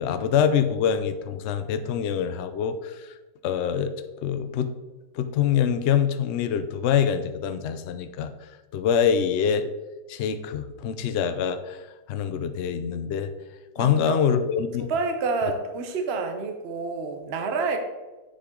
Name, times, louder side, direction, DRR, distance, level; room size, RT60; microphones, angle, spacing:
voice 1, 0.0-3.2 3.4-4.7 5.1-8.3 8.7-9.7 10.1-11.8 12.1-13.3 13.8-14.9, left 8 dB, 85° left, 10 dB, 0.5 m, -25 dB
voice 2, 13.8-14.2 14.9-17.8, right 4 dB, 45° right, 5 dB, 0.9 m, -28 dB
7.6 x 6.8 x 3.7 m, 1.2 s
omnidirectional pair, 1.8 m